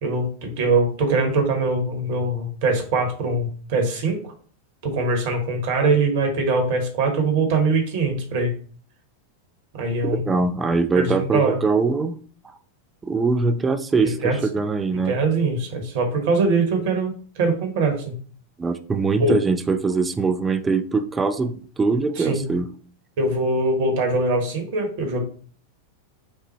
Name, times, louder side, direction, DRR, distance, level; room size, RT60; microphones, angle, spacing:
voice 1, 0.0-4.3 4.8-8.5 9.7-10.2 10.9-11.5 14.0-14.4 15.0-18.1 19.2-19.4 22.2-22.4 23.2-25.2, right 3 dB, 50° right, 3 dB, 1.3 m, -22 dB
voice 2, 10.1-12.2 13.0-15.1 18.6-22.7, right 4 dB, 15° right, 9 dB, 0.4 m, -22 dB
5.8 x 2.2 x 3.1 m, 0.43 s
figure-of-eight pair, 90°, 0 cm